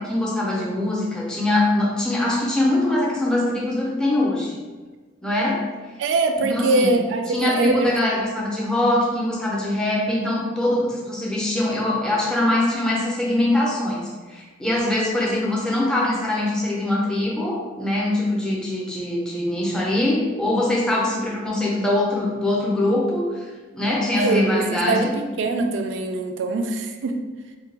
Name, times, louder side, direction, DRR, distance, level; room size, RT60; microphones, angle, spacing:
voice 1, 0.0-4.5 5.2-5.6 6.4-6.9 7.3-23.4 23.7-25.1, left 1 dB, 5° left, -4 dB, 0.5 m, -23 dB
voice 2, 6.0-8.0 24.2-25.1 25.4-27.2, right 3 dB, 75° right, 5 dB, 0.3 m, -22 dB
3.2 x 2.2 x 3.2 m, 1.3 s
head